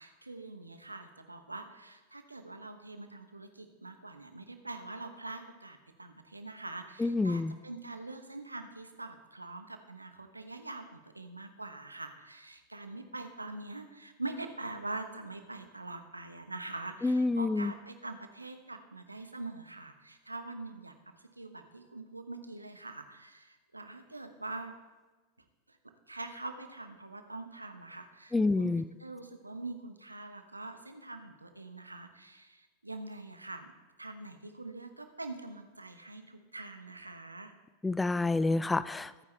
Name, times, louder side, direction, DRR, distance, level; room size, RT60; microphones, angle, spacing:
voice 1, 0.0-24.7 25.7-25.8 26.1-28.7 29.0-33.7 34.0-37.5, right 2 dB, 85° right, 7 dB, 1.2 m, -44 dB
voice 2, 7.0-7.5 17.0-17.7 28.3-28.8 37.8-39.2, left 3 dB, 10° left, 16 dB, 0.4 m, -28 dB
23.0 x 9.5 x 3.4 m, 1.3 s
figure-of-eight pair, 90°, 0 cm